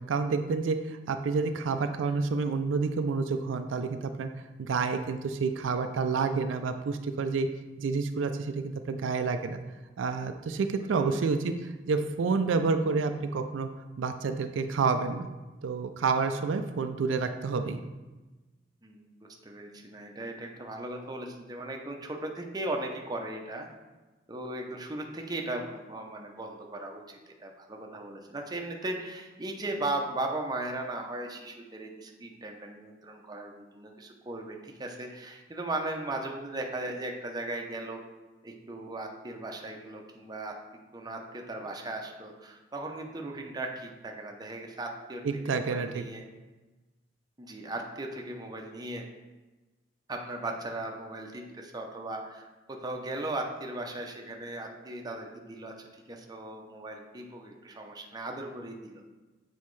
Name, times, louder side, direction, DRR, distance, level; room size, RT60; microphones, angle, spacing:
voice 1, 0.1-4.3 4.6-7.5 7.8-9.6 10.0-13.7 14.0-15.3 15.6-17.8 45.2-46.0, right 4 dB, 80° right, 8 dB, 0.4 m, -29 dB
voice 2, 18.8-23.7 24.3-38.0 38.4-40.5 40.9-46.2 47.4-49.1 50.1-59.0, right 2 dB, 20° right, 1 dB, 0.6 m, -37 dB
7.3 x 4.2 x 3.2 m, 1.2 s
head